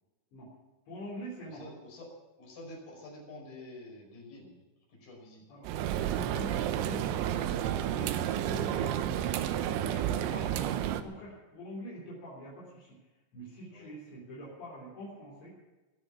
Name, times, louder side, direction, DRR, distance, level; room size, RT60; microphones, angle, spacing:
voice 1, 0.9-1.6 5.5-9.3 9.6-13.0 13.3-15.5, equal, 60° left, -6 dB, 5.8 m, -44 dB
voice 2, 1.5-4.6 4.9-5.6 13.7-13.9, left 1 dB, 45° left, -2 dB, 7.0 m, -48 dB
sound 1, 5.7-11.0, right 11 dB, 80° right, 2.9 m, -31 dB
22.0 x 7.3 x 8.5 m, 1.2 s
omnidirectional pair, 5.7 m